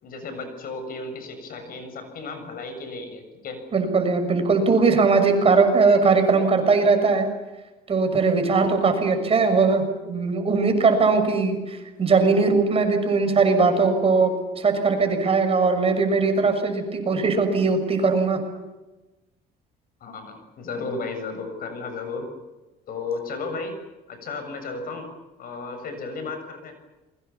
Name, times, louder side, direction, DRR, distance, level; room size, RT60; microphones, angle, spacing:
voice 1, 0.0-3.6 20.0-22.3 22.9-23.8 24.1-25.1 25.4-26.8, left 3 dB, 60° left, 7 dB, 7.1 m, -34 dB
voice 2, 3.7-7.3 7.9-18.4, right 4 dB, 35° right, 6 dB, 6.4 m, -20 dB
28.5 x 23.0 x 7.1 m, 1.1 s
cardioid pair, 110°, 17 cm